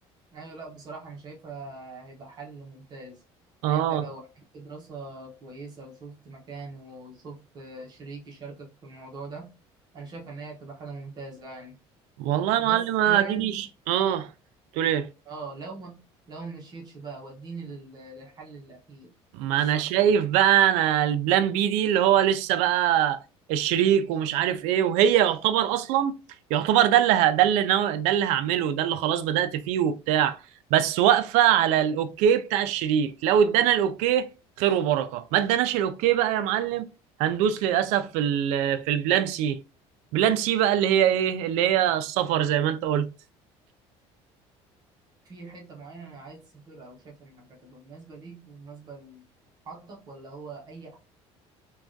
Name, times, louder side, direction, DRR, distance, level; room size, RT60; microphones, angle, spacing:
voice 1, 0.3-3.2 3.6-9.5 9.9-11.8 12.6-13.6 15.2-16.0 16.3-19.1 19.5-19.9 45.2-49.2 49.6-51.0, right 3 dB, 35° right, 0.8 m, -42 dB
voice 2, 3.6-4.0 12.2-14.3 14.7-15.1 19.3-23.2 23.5-26.2 26.5-30.4 30.7-34.3 34.6-36.8 37.2-39.6 40.1-43.1, right 10 dB, 85° right, 0.4 m, -23 dB
3.3 x 2.3 x 2.5 m
cardioid pair, 160°, 12 cm